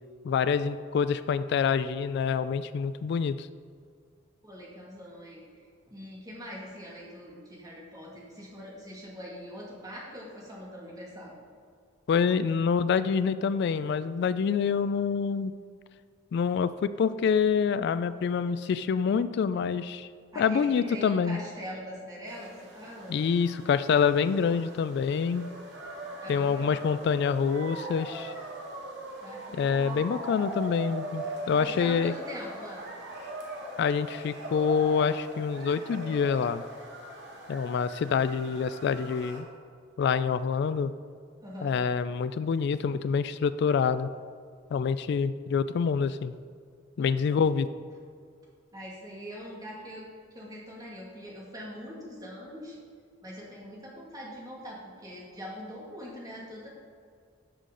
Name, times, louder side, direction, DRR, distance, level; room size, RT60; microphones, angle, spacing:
voice 1, 0.2-3.5 12.1-15.5 16.3-20.1 20.4-21.4 23.1-25.5 26.3-28.3 29.5-32.1 33.8-36.6 37.5-39.5 40.0-40.9 41.6-44.1 44.7-46.3 47.0-47.7, left 6 dB, 60° left, 13 dB, 0.3 m, -26 dB
voice 2, 4.4-5.4 5.9-11.3 20.3-23.2 26.2-26.8 29.2-30.0 31.5-32.8 41.4-41.8 47.0-47.1 48.7-52.8 53.2-56.7, equal, 20° right, -4 dB, 2.3 m, -42 dB
sound 1, 22.3-39.4, right 1 dB, 65° right, 1.9 m, -41 dB
12.5 x 6.5 x 3.9 m, 2.1 s
head